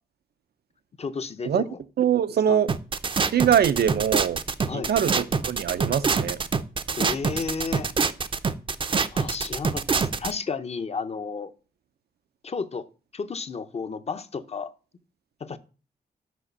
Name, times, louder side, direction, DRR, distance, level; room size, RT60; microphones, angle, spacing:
voice 1, 1.0-1.8 2.5-2.6 4.6-4.9 6.9-7.9 9.1-11.5 12.4-12.8 13.1-14.7 15.4-15.6, left 5 dB, 40° left, 0.6 m, -32 dB
voice 2, 2.0-2.7 3.3-4.4 4.7-6.4, right 9 dB, 80° right, 0.5 m, -23 dB
sound 1, 2.7-10.3, right 5 dB, 30° right, 0.5 m, -25 dB
6.2 x 5.0 x 6.7 m
wide cardioid pair, 130°, 16 cm